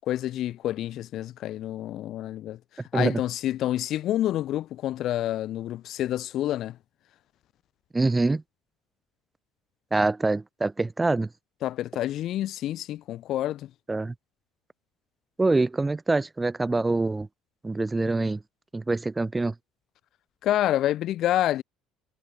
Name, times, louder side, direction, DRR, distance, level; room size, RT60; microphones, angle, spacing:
voice 1, 0.1-2.6 2.9-6.8 11.6-13.7 20.4-21.6, left 13 dB, 50° left, 0.5 m, -28 dB
voice 2, 7.9-8.4 9.9-11.3 13.9-14.1 15.4-17.3 17.6-18.4 18.7-19.5, right 3 dB, 10° right, 1.3 m, -25 dB
cardioid pair, 145°, 0 cm